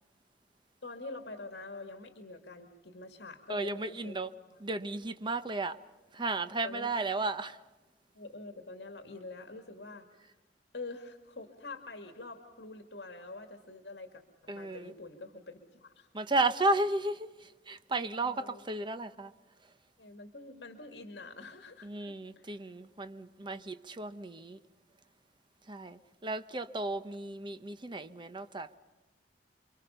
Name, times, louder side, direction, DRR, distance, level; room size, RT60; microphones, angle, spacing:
voice 1, 0.8-4.2 4.5-4.6 6.6-6.9 8.1-10.1 10.7-14.2 14.5-16.1 18.2-18.6 20.0-22.5, left 3 dB, 65° left, 2.2 m, -46 dB
voice 2, 3.5-4.3 4.6-5.8 6.1-7.6 14.5-14.9 16.1-19.3 21.8-24.6 25.7-28.8, right 2 dB, 25° right, 1.0 m, -34 dB
29.5 x 24.0 x 5.6 m
head